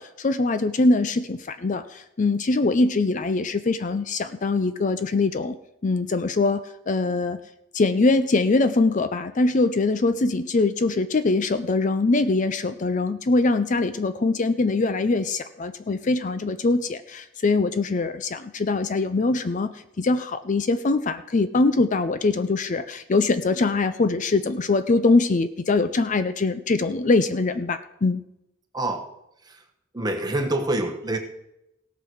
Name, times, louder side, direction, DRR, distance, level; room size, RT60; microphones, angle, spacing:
voice 1, 0.0-5.6 5.8-7.4 7.7-28.2, left 3 dB, 40° left, 11 dB, 0.5 m, -23 dB
voice 2, 28.7-29.1 29.4-29.6 29.9-31.2, right 2 dB, 20° right, 4 dB, 1.3 m, -26 dB
17.5 x 6.1 x 6.3 m, 0.87 s
head